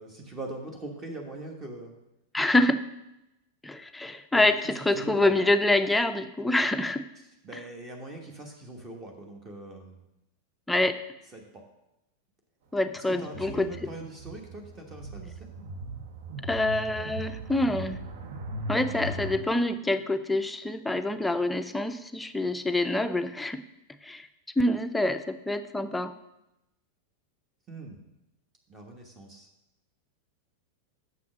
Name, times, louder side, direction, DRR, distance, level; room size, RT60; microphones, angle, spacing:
voice 1, 0.0-1.9 4.3-4.4 4.9-5.3 7.4-10.0 11.3-11.6 13.1-15.5 27.7-28.0 28.7-29.5, right 2 dB, 20° right, 2 dB, 1.3 m, -41 dB
voice 2, 2.3-2.8 3.6-7.1 10.7-11.0 12.7-13.9 16.4-18.0 18.7-23.6 24.0-24.3 24.6-26.1, left 2 dB, 5° left, 9 dB, 0.5 m, -26 dB
sound 1, 13.2-19.4, right 2 dB, 55° right, 1.0 m, -38 dB
6.8 x 5.9 x 6.3 m, 0.90 s
figure-of-eight pair, 90°, 0 cm